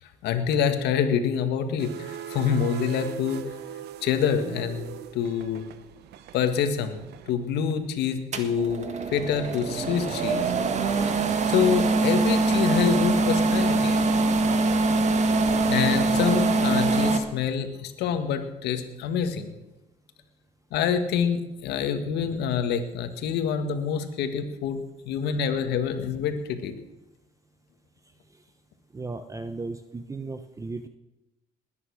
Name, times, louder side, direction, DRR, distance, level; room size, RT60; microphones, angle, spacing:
voice 1, 0.2-3.5 4.0-5.6 6.3-7.0 7.3-10.5 11.5-14.0 15.7-19.5 20.7-26.7, left 7 dB, 80° left, 8 dB, 1.9 m, -26 dB
sound 1, 1.8-8.1, right 10 dB, 75° right, 1.1 m, -40 dB
sound 2, 8.3-17.2, right 3 dB, 45° right, 1.8 m, -23 dB
voice 2, 28.9-30.9, right 3 dB, 20° right, 9 dB, 1.0 m, -36 dB
20.0 x 9.7 x 6.5 m, 1.0 s
cardioid pair, 110°, 17 cm